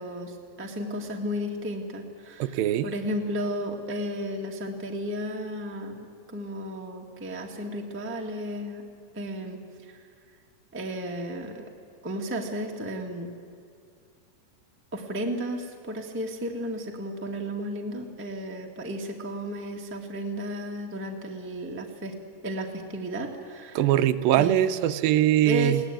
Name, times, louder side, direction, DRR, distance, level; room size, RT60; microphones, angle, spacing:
voice 1, 0.0-8.8 9.1-10.0 10.7-11.7 12.0-13.3 14.9-22.1 22.4-23.9 24.3-24.7 25.4-25.8, equal, 10° right, 1 dB, 0.8 m, -33 dB
voice 2, 2.4-2.9 23.8-25.8, right 12 dB, 85° right, 11 dB, 2.5 m, -22 dB
21.5 x 17.0 x 9.1 m, 2.3 s
omnidirectional pair, 4.1 m